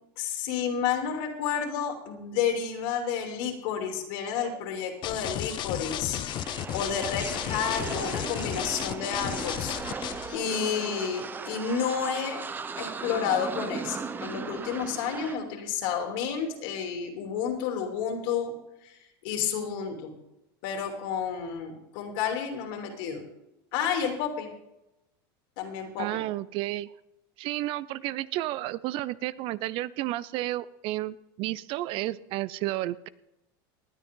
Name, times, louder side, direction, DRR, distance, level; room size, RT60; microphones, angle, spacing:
voice 1, 0.2-12.4 12.7-18.5 18.8-18.9 19.2-20.1 20.6-23.2 23.7-24.5 25.6-26.2, left 7 dB, 65° left, 3 dB, 3.0 m, -31 dB
sound 1, 5.0-10.4, left 12 dB, 40° left, 0.8 m, -34 dB
sound 2, 6.3-15.4, right 5 dB, 15° right, 0.7 m, -37 dB
voice 2, 26.0-26.9 27.4-33.1, right 16 dB, 45° right, 19 dB, 0.5 m, -32 dB
19.0 x 10.5 x 3.8 m, 0.90 s
supercardioid pair, 140°, 12 cm